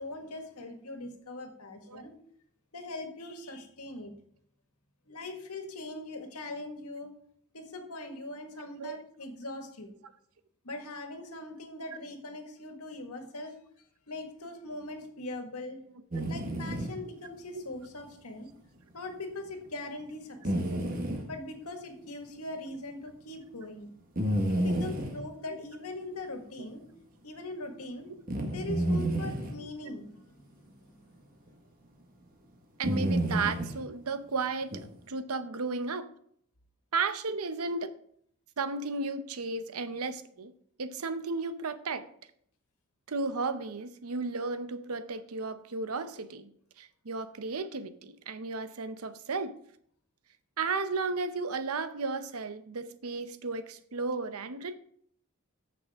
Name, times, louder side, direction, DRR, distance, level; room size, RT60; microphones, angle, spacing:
voice 1, 0.0-2.1 2.7-4.1 5.1-7.1 7.5-9.9 10.6-13.5 14.1-15.8 16.3-18.5 18.9-20.6 21.3-23.9 24.5-26.8 27.2-28.1 28.5-31.0, left 2 dB, 85° left, 1.8 m, -41 dB
voice 2, 8.6-9.0 16.1-16.3 32.8-36.1 36.9-37.9 38.6-40.5 40.8-42.0 43.1-46.5 46.8-49.6 50.6-54.8, right 4 dB, 80° right, 0.8 m, -34 dB
sound 1, 16.1-16.9 20.4-21.2 24.2-25.2 28.3-29.5 31.5-31.6 32.8-33.8 34.7-34.8, right 1 dB, 40° right, 1.6 m, -30 dB
14.0 x 6.0 x 3.6 m
head